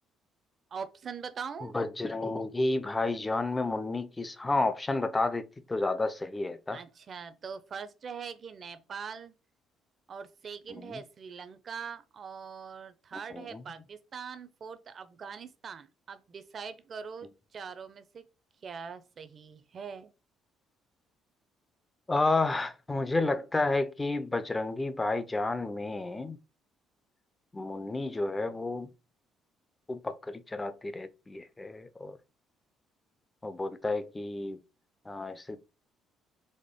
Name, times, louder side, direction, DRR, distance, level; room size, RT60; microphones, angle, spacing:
voice 1, 0.7-1.7 6.7-9.3 10.1-18.3 18.6-20.1, right 6 dB, 35° right, 0.6 m, -42 dB
voice 2, 1.6-6.8 10.7-11.0 13.3-13.6 22.1-26.4 27.5-28.9 29.9-32.2 33.4-34.6 35.1-35.6, left 2 dB, 15° left, 0.5 m, -31 dB
4.2 x 3.0 x 3.5 m
cardioid pair, 135°, 0 cm